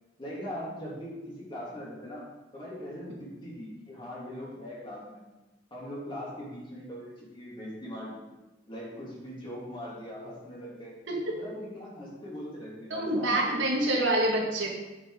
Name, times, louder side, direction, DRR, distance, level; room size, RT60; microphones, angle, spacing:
voice 1, 0.2-2.2 2.5-5.2 5.7-8.2 8.7-10.9 11.4-13.6, equal, 30° left, -6 dB, 3.1 m, -40 dB
voice 2, 11.1-11.4 12.9-14.7, right 1 dB, 90° right, -2 dB, 2.0 m, -26 dB
8.8 x 5.7 x 5.1 m, 1.1 s
head